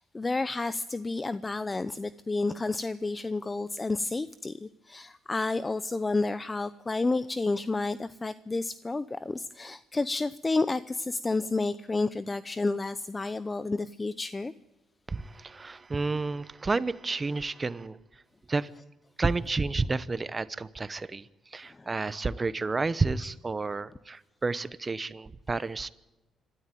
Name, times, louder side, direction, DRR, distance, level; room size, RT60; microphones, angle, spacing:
voice 1, 0.0-14.5 21.7-21.9, left 3 dB, 25° left, 15 dB, 0.6 m, -30 dB
voice 2, 15.1-18.0 18.5-18.7 19.2-25.9, right 3 dB, 25° right, 17 dB, 0.9 m, -31 dB
26.0 x 13.0 x 9.2 m, 1.1 s
cardioid pair, 90°, 0 cm